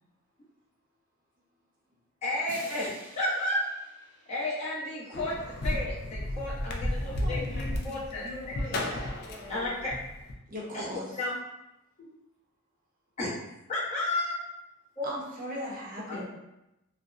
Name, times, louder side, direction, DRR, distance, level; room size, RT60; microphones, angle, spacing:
voice 1, 2.2-3.7 4.3-5.3 5.6-7.0 7.3-8.3 9.5-9.9 10.7-10.9 11.2-11.3 13.2-13.3 13.7-14.3 15.0-15.1 16.1-16.2, left 1 dB, 30° left, -8 dB, 0.8 m, -32 dB
sound 1, 2.4-5.3, right 2 dB, 85° right, 0.5 m, -50 dB
sound 2, 5.1-10.3, left 1 dB, 50° left, 0.3 m, -33 dB
voice 2, 7.0-9.8 11.3-11.5 12.0-12.2, left 1 dB, 70° left, -5 dB, 0.8 m, -44 dB
voice 3, 10.5-11.2 15.0-16.3, equal, 40° right, -4 dB, 0.6 m, -37 dB
2.6 x 2.0 x 2.4 m, 0.92 s
head